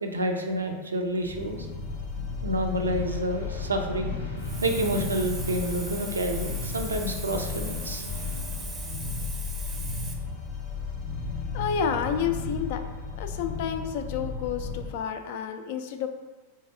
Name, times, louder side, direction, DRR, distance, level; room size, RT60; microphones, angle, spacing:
voice 1, 0.0-1.7 2.4-4.1 4.6-8.0, right 1 dB, 75° right, 4 dB, 0.4 m, -29 dB
sound 1, 1.2-14.9, left 4 dB, 25° left, 0.7 m, -34 dB
sound 2, 2.9-9.3, left 5 dB, 90° left, 0.6 m, -41 dB
Hiss, 4.4-10.1, right 3 dB, 20° right, 0.5 m, -40 dB
voice 2, 11.5-12.8 13.2-16.1, left 7 dB, 50° left, 7 dB, 0.3 m, -30 dB
3.8 x 3.3 x 2.6 m, 1.3 s
figure-of-eight pair, 90°, 0 cm